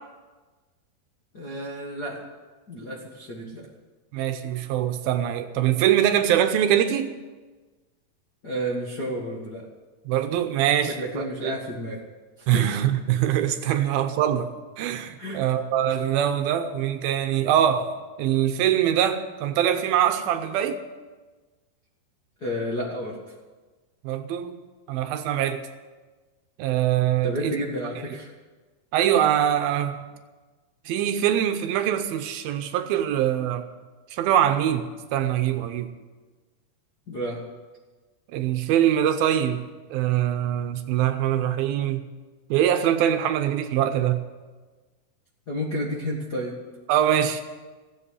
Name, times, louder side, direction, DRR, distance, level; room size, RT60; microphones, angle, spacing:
voice 1, 1.3-2.2 2.7-3.7 8.4-9.6 10.8-12.0 12.5-12.7 13.7-13.9 15.2-15.4 22.4-23.2 27.2-28.3 37.1-37.4 45.5-46.5, equal, 45° left, -4 dB, 1.2 m, -31 dB
voice 2, 4.1-7.1 10.1-11.5 12.5-14.5 14.8-17.9 18.2-20.8 24.0-24.6 24.9-25.6 26.6-27.5 28.9-30.0 30.9-33.7 34.1-35.9 38.3-39.6 39.9-42.0 42.5-44.2 46.9-47.4, right 10 dB, 80° right, 8 dB, 2.4 m, -23 dB
15.5 x 8.1 x 9.7 m, 1.3 s
omnidirectional pair, 4.5 m